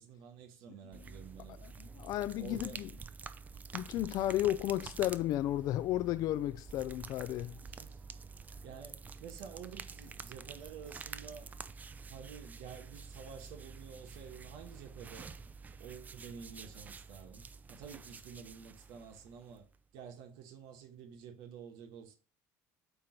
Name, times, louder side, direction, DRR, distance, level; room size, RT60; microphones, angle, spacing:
voice 1, 0.0-1.6 2.4-2.8 7.6-8.0 8.6-11.5 12.1-15.3 15.8-19.6 19.9-22.1, right 7 dB, 85° right, 1.4 m, -50 dB
sound 1, 0.9-19.8, right 5 dB, 25° right, 0.4 m, -49 dB
voice 2, 2.0-2.9 3.7-7.6, left 14 dB, 60° left, 0.3 m, -33 dB
8.7 x 3.0 x 6.0 m
cardioid pair, 130°, 7 cm